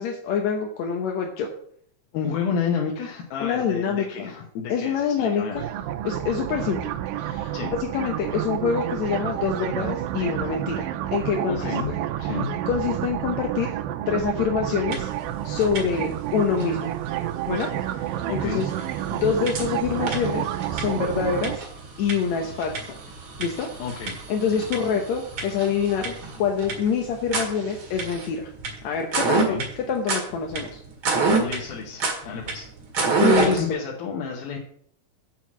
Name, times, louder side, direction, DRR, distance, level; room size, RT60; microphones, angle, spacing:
voice 1, 0.0-1.5 3.4-4.3 4.7-5.7 6.0-7.5 7.9-11.9 12.2-12.4 12.7-13.8 14.1-15.1 15.4-16.9 17.5-18.7 19.1-21.6 22.0-22.9 23.4-23.7 24.3-26.1 26.4-28.5 28.8-29.6 29.9-30.8 33.2-33.6, left 6 dB, 70° left, 2 dB, 1.8 m, -26 dB
voice 2, 2.1-5.6 7.5-7.7 11.5-12.6 18.3-18.7 23.8-24.2 24.5-24.6 24.9-25.0 29.3-29.7 31.4-32.7 33.3-34.6, left 6 dB, 85° left, -1 dB, 2.9 m, -31 dB
sound 1, 5.6-21.6, right 12 dB, 90° right, 2.4 m, -29 dB
sound 2, 14.9-15.2 15.5-16.2 16.6-16.7 17.6-17.7 18.2-18.3 18.6-33.7, right 4 dB, 45° right, 2.2 m, -29 dB
7.5 x 5.9 x 7.3 m, 0.64 s
omnidirectional pair, 4.1 m